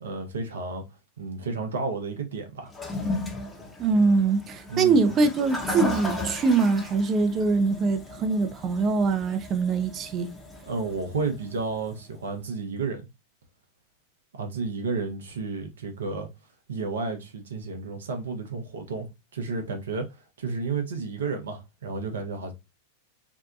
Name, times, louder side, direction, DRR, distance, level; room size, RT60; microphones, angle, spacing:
voice 1, 0.0-0.8 1.2-2.7 4.7-5.1 10.6-13.1 14.3-16.3 16.7-20.1 20.4-22.5, right 4 dB, 75° right, 0.7 m, -32 dB
Toilet flush, 2.7-12.0, left 2 dB, 10° left, 0.7 m, -35 dB
voice 2, 3.8-10.3, right 4 dB, 35° right, 0.5 m, -23 dB
2.7 x 2.2 x 2.4 m
figure-of-eight pair, 95°, 0 cm